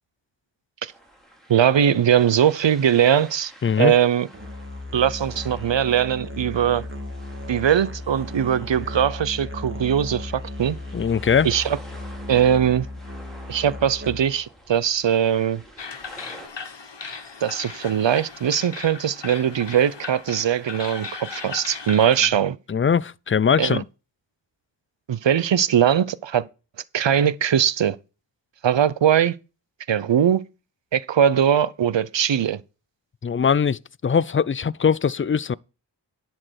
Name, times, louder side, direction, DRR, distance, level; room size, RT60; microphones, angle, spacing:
sound 1, 0.8-16.5, right 1 dB, ahead, 4.2 m, -49 dB
voice 1, 1.5-3.5 3.8-4.3 4.9-6.8 7.5-10.8 11.4-11.8 12.3-12.9 13.5-15.6 17.4-22.6 23.6-23.8 25.1-26.5 26.9-28.0 28.6-29.4 29.9-30.4 30.9-32.6, right 9 dB, 75° right, 0.8 m, -20 dB
voice 2, 3.6-3.9 10.9-11.5 22.7-23.8 33.2-35.5, left 6 dB, 30° left, 0.4 m, -21 dB
Musical instrument, 4.3-14.5, left 2 dB, 25° right, 2.1 m, -35 dB
sound 2, 15.8-22.3, left 5 dB, 70° left, 1.6 m, -37 dB
11.0 x 4.6 x 6.4 m
cardioid pair, 50°, 45 cm